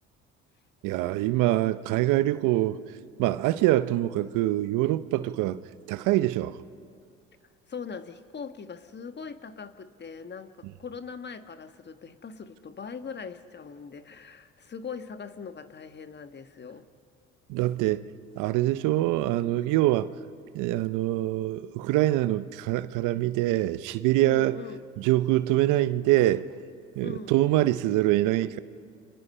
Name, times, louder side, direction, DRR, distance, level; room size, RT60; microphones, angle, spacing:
voice 1, 0.8-2.8 3.2-5.6 5.9-6.6 17.5-18.1 18.4-20.1 20.5-24.6 25.0-26.4 27.0-28.6, right 15 dB, 70° right, 0.8 m, -24 dB
voice 2, 7.7-16.8 24.2-24.8 27.0-27.4, left 5 dB, 35° left, 1.5 m, -41 dB
30.0 x 26.0 x 5.6 m
supercardioid pair, 70°, 32 cm